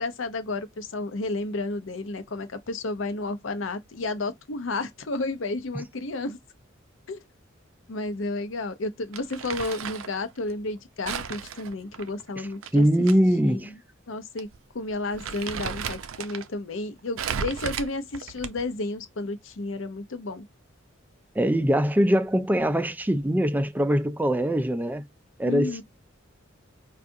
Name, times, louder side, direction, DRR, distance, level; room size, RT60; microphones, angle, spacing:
voice 1, 0.0-6.4 7.1-7.2 7.9-12.9 13.4-13.6 14.1-14.5 14.7-20.5 25.5-25.8, left 2 dB, 70° left, 0.6 m, -32 dB
Crumpling crinkling, 9.1-10.2 11.1-13.1 13.5-13.6 14.4-14.6 14.9-16.5 17.2-18.8, right 7 dB, 90° right, 0.5 m, -34 dB
voice 2, 12.7-13.7 21.4-25.1 25.4-25.8, equal, 10° right, 0.3 m, -22 dB
4.6 x 2.4 x 2.6 m
head